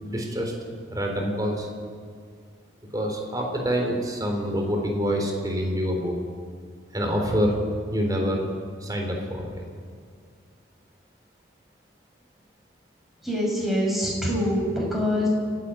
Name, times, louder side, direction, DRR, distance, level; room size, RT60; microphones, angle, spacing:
voice 1, 0.0-0.5 0.9-1.7 2.9-6.2 6.9-7.6 7.9-8.5 8.8-9.6, equal, 20° right, 2 dB, 3.7 m, -26 dB
voice 2, 13.2-15.3, equal, ahead, -4 dB, 6.7 m, -25 dB
29.5 x 10.5 x 8.9 m, 2.1 s
head